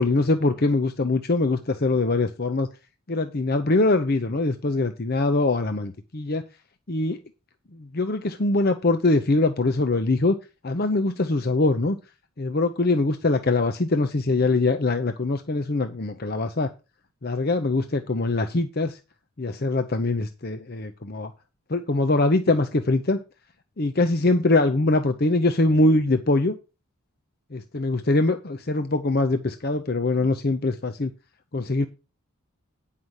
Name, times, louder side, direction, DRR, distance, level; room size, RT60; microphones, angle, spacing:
voice 1, 0.0-2.7 3.1-6.4 6.9-7.2 7.8-10.3 10.6-12.0 12.4-16.7 17.2-19.0 19.4-21.3 21.7-23.2 23.8-26.5 27.5-31.1 31.5-31.9, left 2 dB, 45° left, 7 dB, 0.7 m, -23 dB
9.4 x 5.6 x 6.4 m, 0.29 s
head